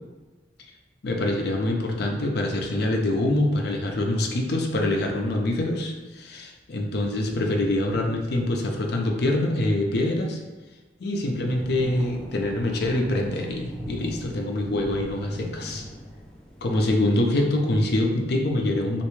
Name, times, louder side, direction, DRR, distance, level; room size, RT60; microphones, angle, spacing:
voice 1, 1.0-10.4 11.0-15.8 16.6-19.0, left 1 dB, 65° left, 2 dB, 0.5 m, -25 dB
sound 1, 11.4-16.9, equal, 5° left, 0.3 m, -39 dB
3.3 x 2.6 x 3.1 m, 1.3 s
head